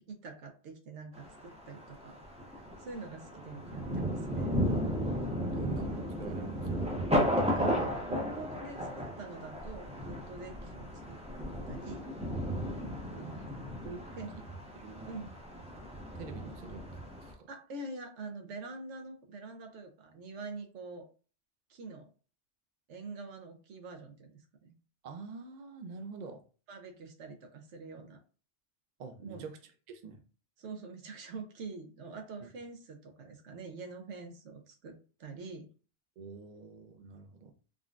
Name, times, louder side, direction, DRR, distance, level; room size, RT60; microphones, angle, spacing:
voice 1, 0.1-2.2 2.5-4.5 7.3-11.2 11.7-12.1 13.1-13.5 14.0-14.3 15.0-15.3 17.5-21.1 21.7-22.1 22.9-24.7 26.7-28.2 29.2-29.5 30.6-35.7, right 3 dB, 75° right, 1.0 m, -45 dB
Thunder, 1.1-17.3, equal, 10° right, 0.5 m, -35 dB
voice 2, 5.5-6.9 13.1-13.3 13.8-14.1 14.3-14.4 14.7-15.2 16.1-16.8 17.2-17.5 25.0-26.4 29.0-29.6 29.9-30.2 32.4-32.5 36.2-37.5, right 5 dB, 55° right, 0.5 m, -45 dB
3.7 x 2.1 x 2.4 m
omnidirectional pair, 1.2 m